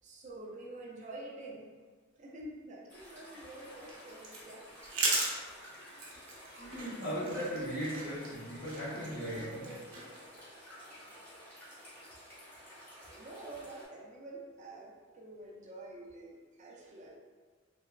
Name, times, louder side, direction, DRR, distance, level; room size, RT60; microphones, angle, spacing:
voice 1, 0.0-1.7 2.2-4.6 8.8-9.9 13.0-17.2, right 2 dB, 35° right, -2 dB, 0.4 m, -48 dB
sound 1, 2.9-13.9, equal, 10° left, 0.9 m, -53 dB
sound 2, 3.5-10.4, right 3 dB, 85° right, 0.6 m, -38 dB
voice 2, 6.6-9.8, equal, 50° left, -11 dB, 0.6 m, -38 dB
3.3 x 2.1 x 2.2 m, 1.5 s
head